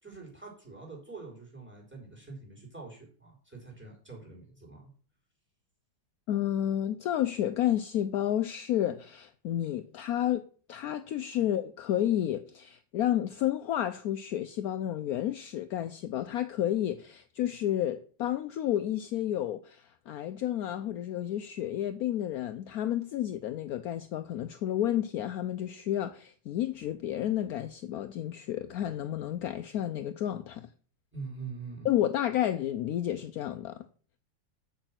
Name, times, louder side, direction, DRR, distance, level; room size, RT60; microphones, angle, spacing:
voice 1, 0.0-4.9 31.1-31.9, right 4 dB, 5° right, 3.9 m, -44 dB
voice 2, 6.3-30.7 31.8-33.9, left 11 dB, 75° left, 0.8 m, -31 dB
7.9 x 6.6 x 5.8 m
omnidirectional pair, 2.1 m